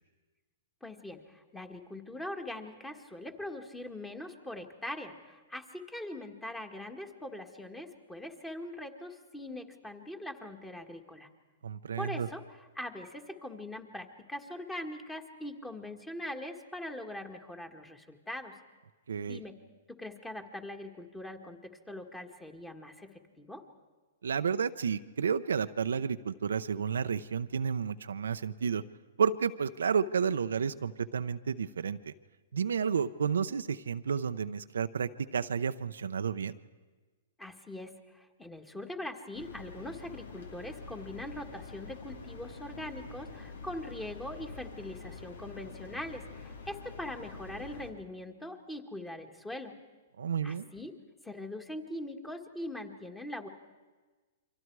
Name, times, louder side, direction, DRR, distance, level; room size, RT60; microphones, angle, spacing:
voice 1, 0.8-11.3 12.0-18.6 19.3-19.5 19.9-23.1 23.4-23.6 37.4-49.8 50.4-50.9 51.2-53.5, left 1 dB, 10° left, 6 dB, 1.8 m, -42 dB
voice 2, 11.6-12.3 19.1-19.4 24.2-28.8 29.2-32.1 32.5-36.6 50.2-50.7, right 6 dB, 90° right, 10 dB, 0.7 m, -31 dB
sound 1, 39.3-47.9, left 4 dB, 80° left, 2.5 m, -46 dB
28.5 x 24.5 x 4.8 m, 1.3 s
hypercardioid pair, 135°, 0 cm